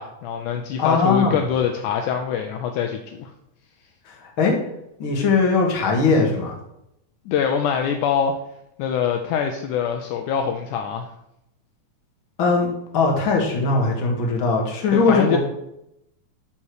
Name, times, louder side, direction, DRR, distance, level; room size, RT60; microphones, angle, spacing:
voice 1, 0.0-3.3 7.3-8.3 8.8-11.1 14.9-15.4, left 7 dB, 80° left, 4 dB, 2.0 m, -24 dB
voice 2, 0.8-1.5 4.1-4.6 5.0-6.5 12.4-12.7 12.9-15.4, left 4 dB, 45° left, -1 dB, 2.2 m, -20 dB
12.0 x 4.3 x 4.8 m, 0.81 s
omnidirectional pair, 3.7 m